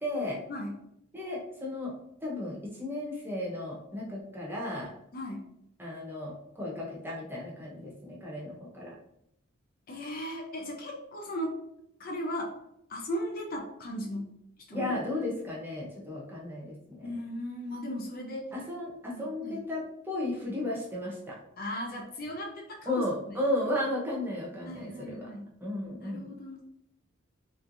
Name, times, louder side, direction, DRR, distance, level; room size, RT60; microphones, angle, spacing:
voice 1, 0.0-0.4 1.1-1.9 2.2-4.9 5.8-8.9 14.7-17.1 18.5-21.4 22.9-25.3 25.6-26.3, left 1 dB, 10° right, -4 dB, 0.9 m, -34 dB
voice 2, 5.1-5.5 9.9-11.6 12.0-12.6 12.9-14.3 14.7-14.9 17.0-18.5 19.1-19.6 21.6-23.4 24.7-25.4 26.0-26.6, equal, 45° left, 1 dB, 0.5 m, -37 dB
3.2 x 3.1 x 2.5 m, 0.76 s
head